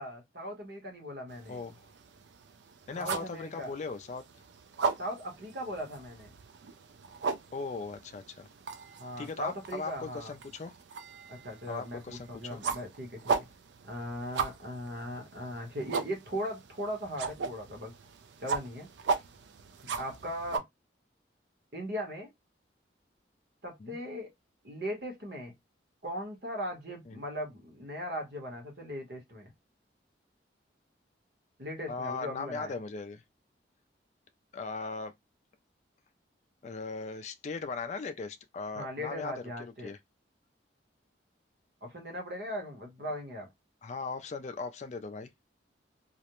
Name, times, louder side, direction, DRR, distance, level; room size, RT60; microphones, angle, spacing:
voice 1, 0.0-1.6 2.9-3.7 5.0-6.3 9.0-10.3 11.3-13.3 13.8-17.9 18.4-19.2 20.0-20.6 21.7-22.3 23.6-24.3 24.6-25.5 26.0-29.5 31.6-32.8 38.7-39.9 41.8-43.5, equal, 60° right, 0.9 m, -38 dB
sound 1, 1.3-20.6, right 5 dB, 75° right, 0.4 m, -38 dB
voice 2, 1.5-1.8 2.9-4.2 7.5-8.5 9.2-10.7 11.7-12.6 23.8-24.0 27.1-27.2 31.9-33.2 34.5-35.1 36.6-39.3 39.6-40.0 43.8-45.3, left 4 dB, 40° left, 0.3 m, -38 dB
2.4 x 2.0 x 2.9 m
head